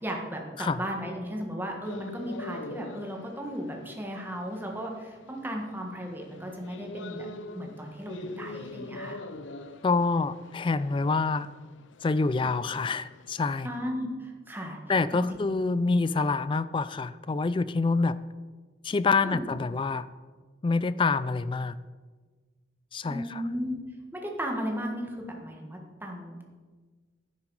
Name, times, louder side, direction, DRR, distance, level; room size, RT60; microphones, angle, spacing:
voice 1, 0.0-7.3 7.5-9.2 13.6-14.8 15.1-15.3 19.2-19.4 23.0-23.8 24.1-26.4, equal, 10° right, 1 dB, 1.5 m, -35 dB
sound 1, 1.8-13.9, left 2 dB, 80° left, 0.6 m, -44 dB
voice 2, 9.8-11.5 12.0-13.7 14.9-18.2 18.8-20.1 20.6-21.8 22.9-23.2, left 4 dB, 25° left, 16 dB, 0.3 m, -26 dB
11.0 x 9.8 x 4.7 m, 1.4 s
head